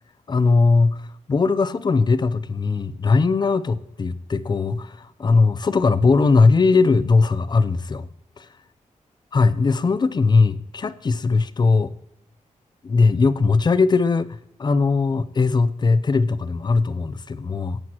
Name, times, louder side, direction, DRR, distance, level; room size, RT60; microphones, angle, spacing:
voice 1, 0.3-1.0 1.3-8.1 8.4-8.5 9.3-11.9 12.8-14.3 14.6-17.8, left 4 dB, 35° left, 13 dB, 0.5 m, -19 dB
17.0 x 7.8 x 3.0 m, 0.83 s
wide cardioid pair, 130°, 13 cm